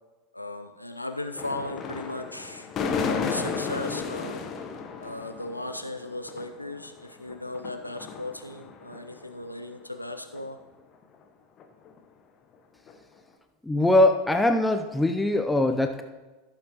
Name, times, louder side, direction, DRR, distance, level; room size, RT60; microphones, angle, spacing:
voice 1, 0.3-2.7 2.9-4.4 5.0-10.6, left 2 dB, 90° left, 6 dB, 0.5 m, -36 dB
sound 1, 1.4-9.3 9.7-9.8 10.3-10.4 11.0-11.1 11.6-12.0 12.9-13.0, left 5 dB, 35° left, 1.1 m, -34 dB
voice 2, 13.6-16.0, left 1 dB, 5° left, 6 dB, 0.6 m, -22 dB
16.0 x 7.2 x 3.0 m, 1.2 s
figure-of-eight pair, 85°, 0 cm